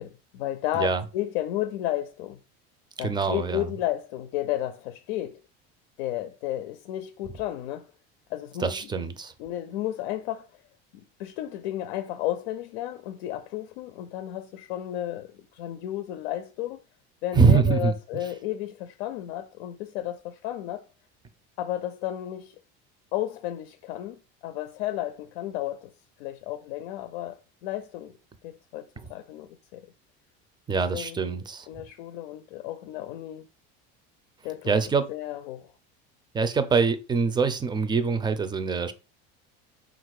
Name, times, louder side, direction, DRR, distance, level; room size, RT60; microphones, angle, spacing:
voice 1, 0.0-2.4 3.0-5.4 6.0-7.9 8.3-8.9 9.4-10.5 10.9-16.8 17.2-20.8 21.6-22.5 23.1-25.9 26.2-28.1 28.4-29.8 30.9-31.2 31.7-33.5 34.4-34.7 35.1-35.7, left 13 dB, 90° left, 0.5 m, -33 dB
voice 2, 3.0-3.7 8.6-9.3 17.3-17.9 29.0-29.1 30.7-31.7 34.7-35.0 36.3-38.9, right 5 dB, 15° right, 0.5 m, -24 dB
3.7 x 2.5 x 4.7 m
supercardioid pair, 115°, 30 cm